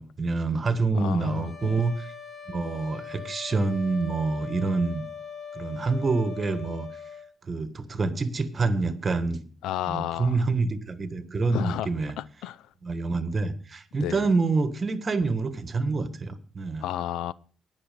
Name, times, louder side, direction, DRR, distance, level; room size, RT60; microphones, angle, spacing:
voice 1, 0.0-2.1 2.5-5.0 5.5-6.9 7.4-9.4 9.8-12.1 12.8-16.9, right 3 dB, 35° right, 1.5 m, -27 dB
voice 2, 0.9-1.7 9.6-10.4 11.5-11.9 12.2-12.6 14.0-14.2 16.8-17.3, left 12 dB, 90° left, 0.4 m, -31 dB
sound 1, 1.2-7.3, left 6 dB, 30° left, 2.1 m, -41 dB
18.5 x 6.3 x 5.1 m
cardioid pair, 90°, 0 cm